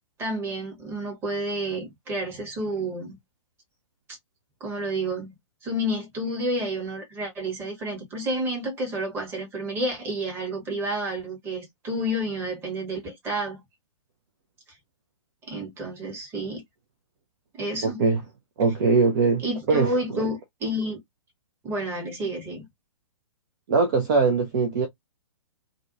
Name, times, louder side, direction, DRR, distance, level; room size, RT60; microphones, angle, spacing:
voice 1, 0.2-3.2 4.6-5.4 5.6-13.6 15.4-16.6 17.6-18.0 19.4-21.0 21.6-22.7, right 1 dB, 15° right, 1.0 m, -30 dB
voice 2, 17.8-18.2 18.6-20.3 23.7-24.9, right 4 dB, 35° right, 0.6 m, -22 dB
2.5 x 2.2 x 2.6 m
figure-of-eight pair, 120°, 17 cm